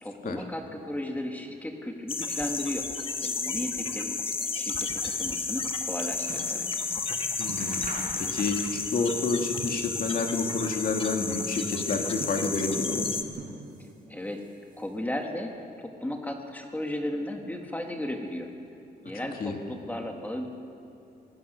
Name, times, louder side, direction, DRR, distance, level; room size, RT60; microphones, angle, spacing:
voice 1, 0.0-2.9 3.2-6.7 13.8-14.5 14.8-18.5 19.0-20.5, left 1 dB, 10° left, 3 dB, 1.6 m, -35 dB
sound 1, 2.1-13.2, left 4 dB, 30° left, 1.4 m, -32 dB
sound 2, 5.5-6.7 7.0-7.1 7.4-8.7 9.0-9.9 10.3-11.2 11.8-12.8 13.3-14.0 14.3-15.1 15.7-15.8, right 3 dB, 50° right, 5.2 m, -43 dB
voice 2, 7.4-7.9 8.2-13.1 19.1-19.6, left 3 dB, 55° left, 3 dB, 2.4 m, -29 dB
26.0 x 18.0 x 6.7 m, 2.6 s
wide cardioid pair, 155°, 18 cm